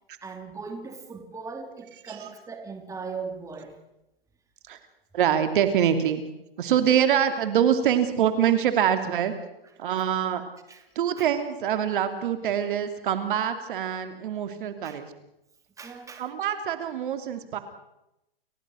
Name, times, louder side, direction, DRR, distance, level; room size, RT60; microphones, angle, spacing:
voice 1, 0.2-3.8 6.7-6.8 10.0-10.1 10.7-10.8 11.2-11.3 14.8-15.0 15.8-16.2, right 4 dB, 10° right, 4 dB, 3.0 m, -39 dB
voice 2, 5.1-6.2 6.6-9.3 9.8-10.4 10.9-15.1 16.2-17.6, right 9 dB, 60° right, 8 dB, 2.9 m, -24 dB
29.5 x 16.0 x 6.4 m, 0.87 s
hypercardioid pair, 125°, 30 cm